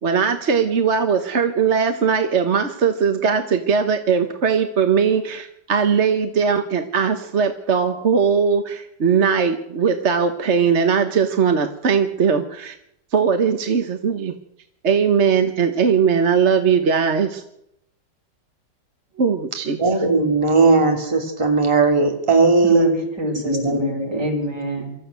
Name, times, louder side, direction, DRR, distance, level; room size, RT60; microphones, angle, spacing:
voice 1, 0.0-12.7 13.1-14.3 14.8-17.4 19.2-19.8, right 6 dB, 45° right, 7 dB, 1.3 m, -19 dB
voice 2, 19.8-22.9 23.5-24.3, right 3 dB, 15° right, 3 dB, 2.7 m, -17 dB
voice 3, 22.6-25.0, equal, 70° right, 1 dB, 5.9 m, -25 dB
24.0 x 14.0 x 8.2 m, 0.79 s
omnidirectional pair, 1.9 m